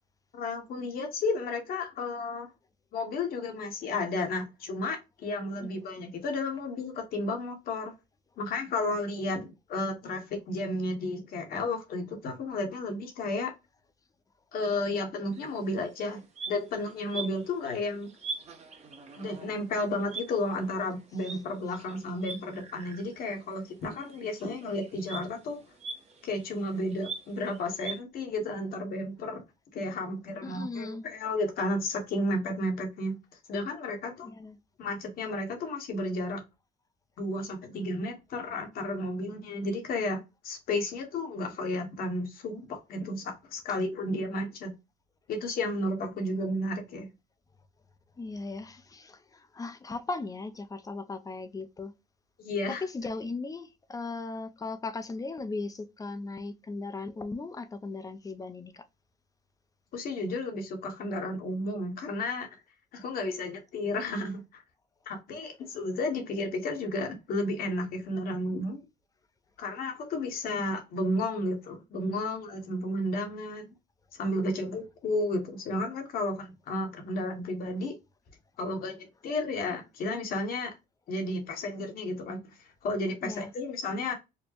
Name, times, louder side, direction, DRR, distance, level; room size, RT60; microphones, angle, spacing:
voice 1, 0.3-2.5 2.9-7.9 8.4-13.5 14.5-18.1 19.2-25.6 26.2-29.4 29.7-33.1 33.5-34.3 34.8-36.4 37.2-40.2 40.4-44.7 45.3-47.1 52.4-52.8 59.9-62.5 62.9-64.6 65.1-68.8 69.6-73.7 74.1-77.9 78.6-79.0 79.2-80.7 81.1-82.5 82.8-84.1, left 2 dB, 60° left, 1.4 m, -32 dB
sound 1, 15.3-15.5 16.0-23.3 23.6-28.0, right 4 dB, 40° right, 1.0 m, -43 dB
voice 2, 30.4-31.0 34.2-34.6 48.2-51.9 52.8-58.8 83.2-83.5, left 3 dB, 20° left, 0.6 m, -37 dB
4.3 x 2.2 x 2.9 m
cardioid pair, 110°, 17 cm